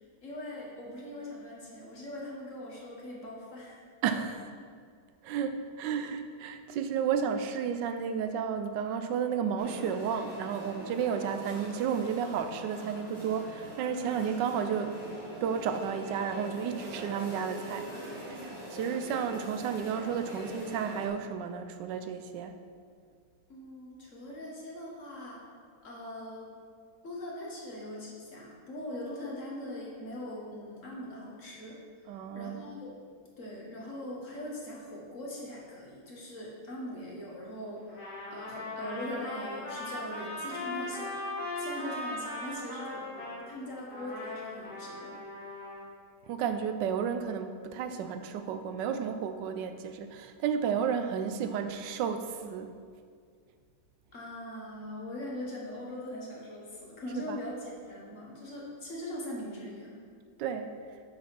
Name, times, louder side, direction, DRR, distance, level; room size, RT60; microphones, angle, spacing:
voice 1, 0.2-3.8 23.5-25.4 25.8-26.6 27.0-31.8 32.3-32.9 33.4-38.0 38.3-41.2 41.6-45.2 54.1-60.0, left 1 dB, 45° left, -3 dB, 1.6 m, -41 dB
voice 2, 4.0-4.5 5.2-15.0 15.4-17.9 18.3-22.6 32.1-32.6 46.3-52.7 57.3-57.4 60.4-60.7, right 7 dB, 80° right, 8 dB, 1.3 m, -32 dB
sound 1, 9.6-21.1, right 1 dB, 15° right, 1.4 m, -43 dB
Trumpet, 37.9-43.4 43.9-45.8, left 1 dB, 65° left, 2.6 m, -39 dB
7.0 x 4.9 x 5.8 m, 2.1 s
omnidirectional pair, 1.9 m